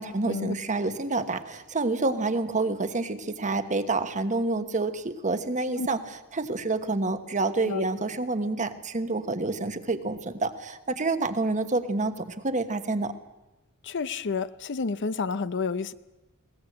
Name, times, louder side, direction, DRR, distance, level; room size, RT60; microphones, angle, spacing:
voice 1, 0.0-13.1, right 3 dB, 35° right, 10 dB, 1.2 m, -28 dB
voice 2, 13.8-15.9, left 4 dB, 55° left, 15 dB, 0.6 m, -30 dB
21.0 x 18.5 x 8.0 m, 1.0 s
head